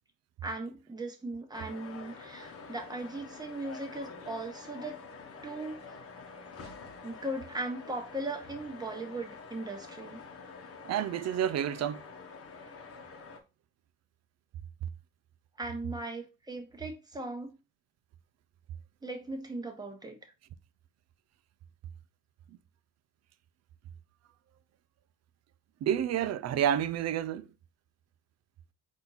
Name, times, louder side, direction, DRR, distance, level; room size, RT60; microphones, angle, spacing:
voice 1, 0.4-5.0 5.4-5.8 7.0-10.2 15.6-17.5 19.0-20.2, right 2 dB, 15° right, 1.1 m, -38 dB
sound 1, 1.5-13.4, left 4 dB, 50° left, 1.0 m, -47 dB
voice 2, 10.8-12.0 25.8-27.5, right 10 dB, 60° right, 0.5 m, -29 dB
4.3 x 2.7 x 4.0 m
cardioid pair, 90°, 30 cm